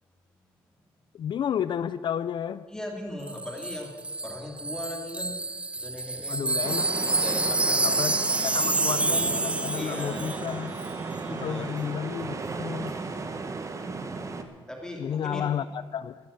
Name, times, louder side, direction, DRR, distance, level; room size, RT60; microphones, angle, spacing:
voice 1, 1.1-2.7 6.3-6.9 7.8-8.1 8.4-10.7 11.3-12.9 15.0-16.2, left 8 dB, 55° left, 15 dB, 0.5 m, -31 dB
voice 2, 2.7-4.0 4.2-5.3 5.7-6.6 7.2-7.8 9.8-10.3 11.3-11.6 14.7-15.4, left 1 dB, 5° left, 1 dB, 2.5 m, -38 dB
Wind chime, 3.3-10.5 10.8-11.0, right 2 dB, 10° right, 0.6 m, -28 dB
sound 1, 6.6-14.4, right 4 dB, 35° right, 1.3 m, -35 dB
14.5 x 9.6 x 8.2 m, 1.5 s
cardioid pair, 95°, 10 cm